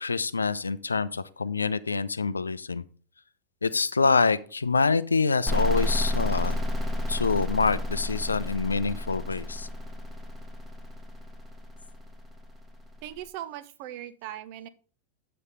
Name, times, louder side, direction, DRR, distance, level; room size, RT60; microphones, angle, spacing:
voice 1, 0.0-2.8 3.6-6.6 7.1-9.7, left 4 dB, 75° left, 15 dB, 0.4 m, -26 dB
sound 1, 5.5-13.0, left 1 dB, 5° right, 1.1 m, -31 dB
voice 2, 13.0-14.7, right 12 dB, 45° right, 14 dB, 0.6 m, -39 dB
8.1 x 4.3 x 5.0 m, 0.41 s
figure-of-eight pair, 90°, 0 cm